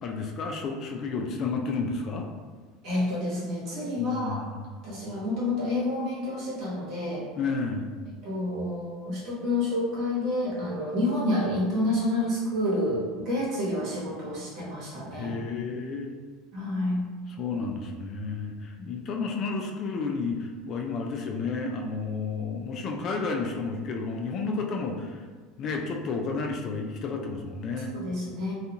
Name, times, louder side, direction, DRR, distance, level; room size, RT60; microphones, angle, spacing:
voice 1, 0.0-2.3 4.0-4.6 7.4-7.9 15.1-16.1 17.3-25.2 25.6-27.9, left 4 dB, 45° left, 2 dB, 0.3 m, -31 dB
voice 2, 2.8-4.4 4.8-7.3 8.2-15.3 16.5-17.0 18.8-18.9 27.9-28.5, left 1 dB, 50° right, -6 dB, 1.1 m, -29 dB
2.4 x 2.4 x 2.8 m, 1.5 s
supercardioid pair, 120°, 0 cm